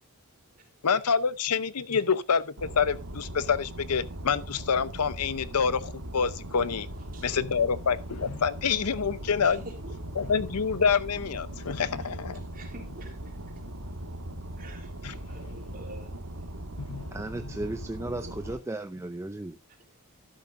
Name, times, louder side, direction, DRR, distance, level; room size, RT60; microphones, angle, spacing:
voice 1, 0.8-6.9 7.2-9.6 10.2-12.5 15.0-15.2 16.8-17.1, left 6 dB, 85° left, 0.8 m, -27 dB
sound 1, 2.6-18.6, right 1 dB, 75° right, 1.9 m, -40 dB
voice 2, 7.1-7.6 9.0-9.2 9.4-10.0 12.0-12.1 12.5-13.3 14.6-16.2 18.0-18.3, right 2 dB, 40° right, 3.8 m, -47 dB
voice 3, 17.1-19.6, right 2 dB, 10° right, 0.5 m, -35 dB
12.5 x 11.0 x 2.6 m
head